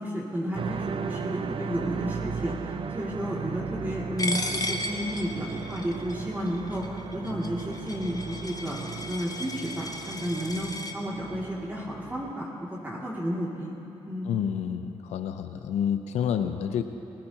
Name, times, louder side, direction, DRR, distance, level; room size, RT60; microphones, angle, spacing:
voice 1, 0.0-8.8 9.1-13.7 14.0-14.3, equal, 15° right, -6 dB, 2.5 m, -32 dB
sound 1, 0.5-12.3, right 6 dB, 55° right, 0.6 m, -36 dB
Coin (dropping), 4.2-10.9, left 1 dB, 35° left, 1.3 m, -35 dB
voice 2, 14.3-16.8, left 8 dB, 90° left, 8 dB, 0.6 m, -29 dB
19.5 x 18.0 x 2.9 m, 2.9 s
cardioid pair, 55°, 11 cm